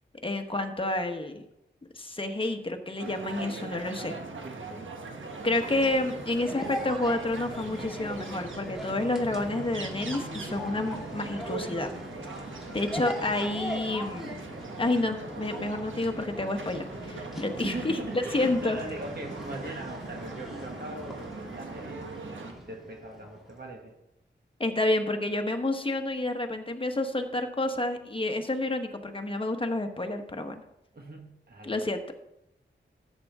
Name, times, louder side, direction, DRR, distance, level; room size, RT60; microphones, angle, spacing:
voice 1, 0.2-1.4 1.9-4.2 5.4-11.9 12.7-14.3 14.8-18.8 24.6-30.6 31.6-32.1, left 2 dB, 25° left, 5 dB, 1.2 m, -29 dB
sound 1, 3.0-22.5, right 3 dB, 85° right, 1.2 m, -40 dB
voice 2, 4.0-4.9 17.6-21.2 21.5-23.9 30.9-31.8, right 2 dB, 55° right, 1 dB, 1.6 m, -41 dB
sound 2, 5.2-23.7, equal, ahead, 2.7 m, -41 dB
13.5 x 8.3 x 3.6 m, 0.85 s
wide cardioid pair, 95°, 19 cm